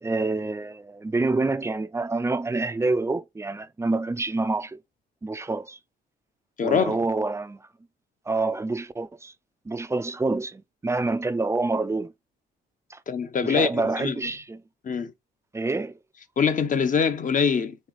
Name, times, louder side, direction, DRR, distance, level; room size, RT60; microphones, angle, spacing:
voice 1, 0.0-4.8 5.2-5.8 6.6-7.7 8.3-9.3 9.7-12.1 12.9-13.0 13.4-14.6 15.5-16.0, right 3 dB, 15° right, 0.4 m, -27 dB
voice 2, 6.6-7.0 13.1-14.2 14.8-15.1 16.4-17.8, left 6 dB, 40° left, 0.8 m, -24 dB
3.9 x 3.2 x 3.9 m
cardioid pair, 90°, 20 cm